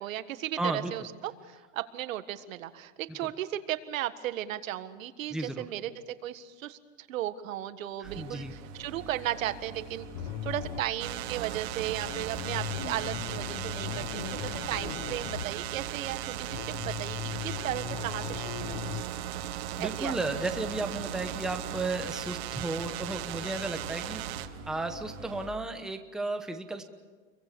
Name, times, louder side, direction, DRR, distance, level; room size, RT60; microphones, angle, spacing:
voice 1, 0.0-5.9 6.2-10.1 10.4-14.4 14.7-17.2 17.4-18.9 19.8-20.2, right 13 dB, 90° right, 11 dB, 1.7 m, -35 dB
voice 2, 0.6-0.9 5.3-5.7 8.0-8.5 19.8-24.2 24.7-26.8, right 2 dB, ahead, 5 dB, 1.0 m, -34 dB
sound 1, 8.0-25.5, right 3 dB, 70° right, 4.3 m, -45 dB
sound 2, 10.1-15.4 15.7-19.0, left 11 dB, 45° left, 1.3 m, -39 dB
sound 3, 11.0-24.5, right 14 dB, 55° right, 1.3 m, -37 dB
29.0 x 23.5 x 6.9 m, 1.4 s
supercardioid pair, 165°, 39 cm